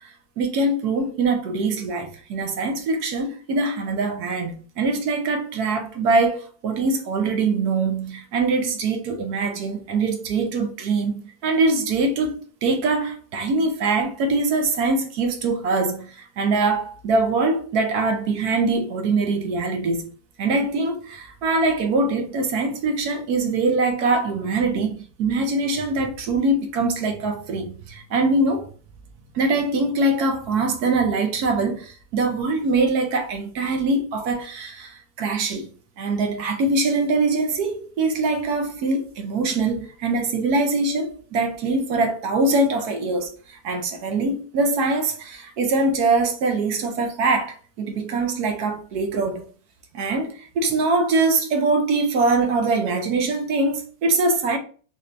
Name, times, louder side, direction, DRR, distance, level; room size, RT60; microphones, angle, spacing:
voice 1, 0.4-20.1 20.4-28.7 29.3-35.7 36.0-43.3 43.6-49.4 49.9-54.6, right 3 dB, 65° right, 1.2 m, -23 dB
4.1 x 3.3 x 2.5 m
omnidirectional pair, 1.9 m